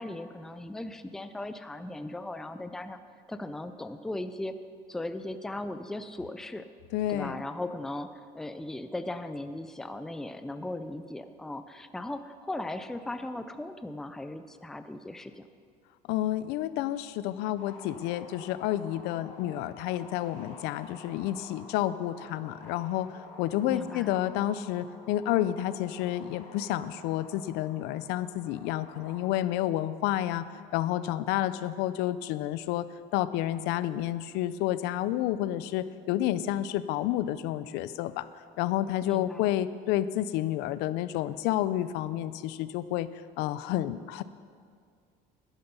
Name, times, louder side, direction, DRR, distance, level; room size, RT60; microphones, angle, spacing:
voice 1, 0.0-3.0 3.3-4.6 4.9-6.7 7.1-15.5 23.7-24.1 39.0-39.6, left 1 dB, 5° left, 10 dB, 0.4 m, -38 dB
voice 2, 6.9-7.4 16.1-23.1 23.4-30.5 30.7-38.3 38.6-43.1 43.4-44.2, left 13 dB, 75° left, 15 dB, 0.5 m, -30 dB
sound 1, 17.5-29.2, left 2 dB, 45° left, 3.4 m, -50 dB
12.0 x 10.5 x 5.4 m, 2.1 s
cardioid pair, 150°, 17 cm